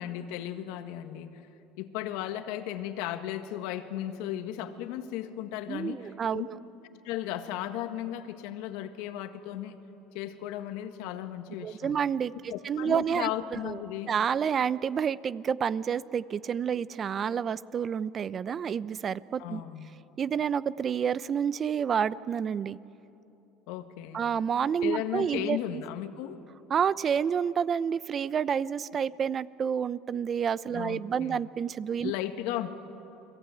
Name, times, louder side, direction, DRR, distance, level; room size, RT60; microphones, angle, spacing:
voice 1, 0.0-1.4 1.8-6.5 7.0-9.8 10.1-12.0 12.5-14.1 19.4-19.9 23.7-24.2 24.8-26.4 30.7-31.4 32.0-32.7, left 12 dB, 80° left, 8 dB, 1.7 m, -35 dB
voice 2, 5.7-6.6 11.6-13.8 14.1-19.6 20.2-22.8 24.1-25.8 26.7-32.1, right 7 dB, 40° right, 18 dB, 0.7 m, -29 dB
30.0 x 21.5 x 9.3 m, 2.9 s
supercardioid pair, 100°, 0 cm